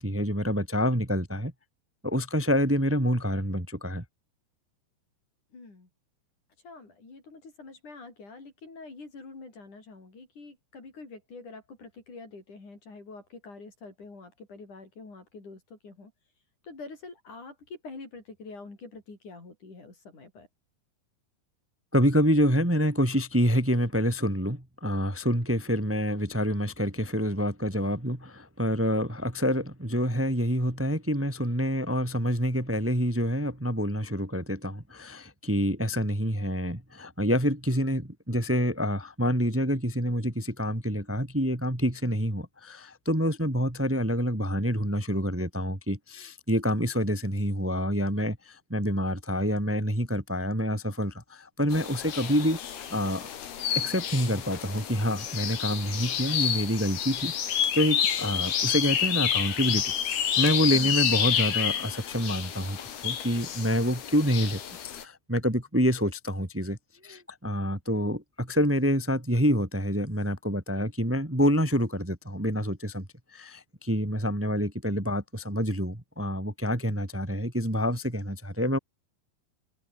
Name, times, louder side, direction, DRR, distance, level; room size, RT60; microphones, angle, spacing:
voice 1, 0.0-1.5 2.0-4.0 21.9-52.6 52.9-53.3 53.7-59.8 60.4-64.6 64.9-66.8 67.0-73.0 73.3-78.8, equal, 20° right, 0.3 m, -27 dB
voice 2, 5.5-5.9 6.6-16.1 16.6-20.5, left 3 dB, 50° left, 8.7 m, -46 dB
sound 1, 51.7-65.0, left 9 dB, 75° left, 4.7 m, -29 dB
omnidirectional pair, 4.5 m